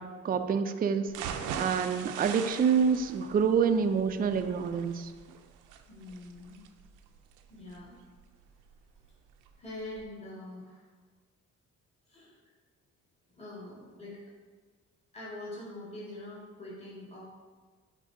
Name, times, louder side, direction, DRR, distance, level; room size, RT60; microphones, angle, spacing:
voice 1, 0.0-5.1, right 6 dB, 30° right, 7 dB, 0.4 m, -27 dB
sound 1, 1.1-9.1 9.5-9.6 9.9-10.0, right 7 dB, 85° right, 0.5 m, -42 dB
voice 2, 5.9-6.7 7.5-8.0 9.6-10.8 12.1-12.3 13.4-14.2 15.1-17.2, left 1 dB, 20° left, -7 dB, 1.9 m, -44 dB
9.8 x 3.8 x 2.7 m, 1.5 s
cardioid pair, 90°, 30 cm